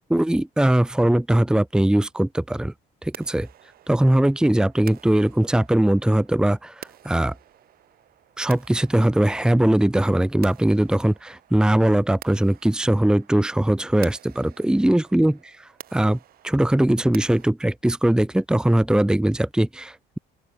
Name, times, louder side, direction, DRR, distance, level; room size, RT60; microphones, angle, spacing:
voice 1, 0.1-2.7 3.0-3.5 3.9-7.3 8.4-15.4 15.9-16.2 16.4-20.2, right 1 dB, 5° right, 1.1 m, -20 dB
sound 1, 3.1-17.5, right 12 dB, 60° right, 2.3 m, -48 dB
open air
cardioid pair, 110°, 17 cm